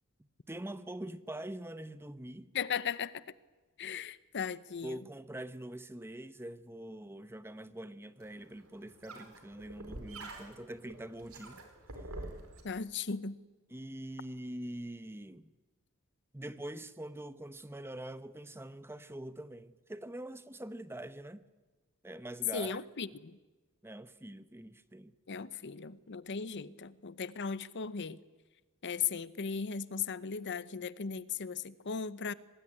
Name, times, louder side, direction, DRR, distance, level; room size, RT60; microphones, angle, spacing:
voice 1, 0.5-2.5 4.8-11.6 12.2-12.3 13.7-15.5 16.3-21.4 22.0-22.8 23.8-25.1, right 1 dB, 10° right, 0.8 m, -44 dB
voice 2, 2.5-3.2 3.8-4.9 12.6-13.4 22.5-23.3 25.3-28.2 28.8-32.3, left 6 dB, 55° left, 0.8 m, -37 dB
sound 1, 8.2-12.6, right 2 dB, 70° right, 4.6 m, -47 dB
25.0 x 19.5 x 9.9 m
head